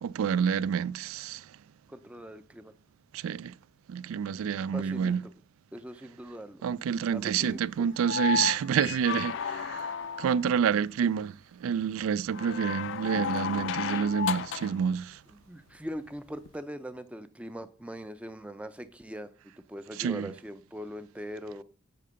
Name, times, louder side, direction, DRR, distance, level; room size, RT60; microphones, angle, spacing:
voice 1, 0.0-1.5 3.1-3.5 3.9-5.2 6.6-15.2 20.0-20.3, right 7 dB, 85° right, 0.3 m, -28 dB
voice 2, 1.9-2.7 4.7-5.3 5.7-6.6 7.1-7.6 15.3-19.3 19.7-21.6, equal, 5° right, 0.4 m, -41 dB
sound 1, 8.0-10.5 12.3-14.8 16.4-16.5, left 7 dB, 60° left, 0.4 m, -33 dB
8.5 x 3.8 x 6.7 m
head